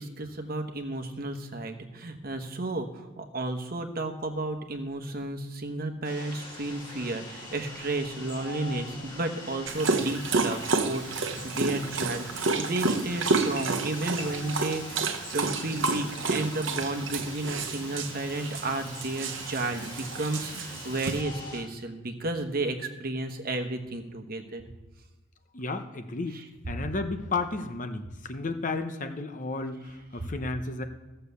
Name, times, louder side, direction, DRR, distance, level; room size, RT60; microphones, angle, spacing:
voice 1, 0.0-24.6 26.3-26.5 30.2-30.3, right 2 dB, 50° right, 6 dB, 1.1 m, -33 dB
sound 1, 6.0-21.6, left 2 dB, 25° left, 2.8 m, -43 dB
Dog, 9.7-21.2, right 4 dB, 70° right, 0.9 m, -30 dB
voice 2, 25.5-26.4 26.7-30.8, left 3 dB, 40° left, 7 dB, 0.9 m, -33 dB
14.5 x 6.8 x 6.9 m, 1.2 s
head